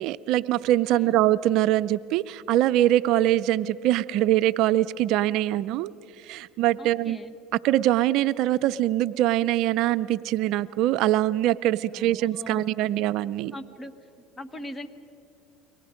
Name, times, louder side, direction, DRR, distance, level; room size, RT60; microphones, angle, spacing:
voice 1, 0.0-5.9 6.2-7.2 7.6-13.5, right 13 dB, 65° right, 15 dB, 0.5 m, -23 dB
voice 2, 6.8-7.3 11.9-12.6 13.5-13.9 14.4-14.9, left 1 dB, 15° left, 9 dB, 1.3 m, -40 dB
29.5 x 23.5 x 5.1 m, 2.7 s
supercardioid pair, 100°, 0 cm